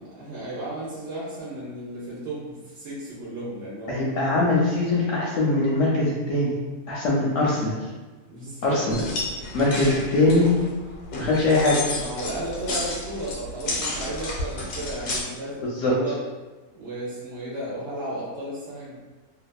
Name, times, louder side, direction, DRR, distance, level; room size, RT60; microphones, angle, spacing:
voice 1, 0.0-4.1 8.3-8.8 9.8-10.1 11.9-16.2 16.8-19.0, right 1 dB, 60° right, -8 dB, 0.8 m, -34 dB
voice 2, 3.9-6.5 6.9-7.7 8.6-9.0 9.5-10.5 11.2-11.8 15.6-15.9, left 2 dB, 70° left, -5 dB, 0.8 m, -22 dB
sound 1, 8.9-15.2, left 2 dB, 85° left, 1.1 m, -32 dB
2.6 x 2.2 x 2.2 m, 1.2 s
omnidirectional pair, 1.6 m